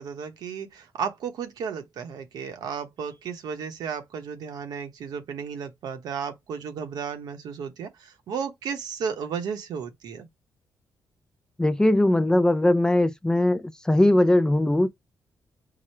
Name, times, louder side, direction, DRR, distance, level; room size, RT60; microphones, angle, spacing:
voice 1, 0.0-10.3, right 6 dB, 80° right, 0.9 m, -34 dB
voice 2, 11.6-14.9, left 1 dB, 10° left, 0.4 m, -20 dB
4.9 x 2.1 x 4.3 m
cardioid pair, 120°, 7 cm